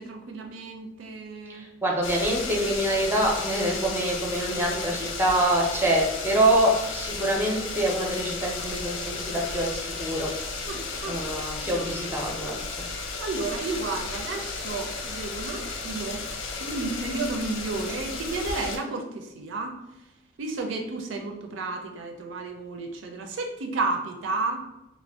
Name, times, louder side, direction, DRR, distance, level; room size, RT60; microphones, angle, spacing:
voice 1, 0.0-1.7 10.7-11.9 13.2-16.3 16.6-19.8 20.4-24.6, right 3 dB, 70° right, 3 dB, 0.4 m, -32 dB
voice 2, 1.5-10.3 11.0-12.9, right 1 dB, 10° right, -1 dB, 0.5 m, -25 dB
sound 1, 2.0-18.8, left 4 dB, 75° left, 0.4 m, -34 dB
2.4 x 2.1 x 3.4 m, 0.90 s
head